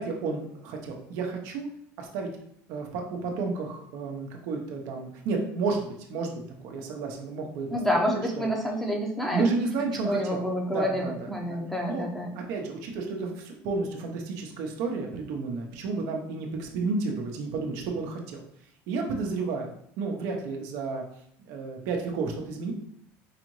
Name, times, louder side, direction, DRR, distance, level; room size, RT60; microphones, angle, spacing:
voice 1, 0.0-1.7 2.0-2.3 2.7-7.7 8.1-8.5 9.3-10.4 10.7-11.1 11.5-11.6 11.8-12.0 12.5-18.4 18.9-19.7 20.0-21.0 21.4-22.7, right 4 dB, 75° right, 1 dB, 0.8 m, -31 dB
voice 2, 7.7-9.5 10.0-12.3, equal, 5° left, 0 dB, 0.8 m, -28 dB
4.8 x 2.6 x 3.1 m, 0.70 s
supercardioid pair, 110°, 6 cm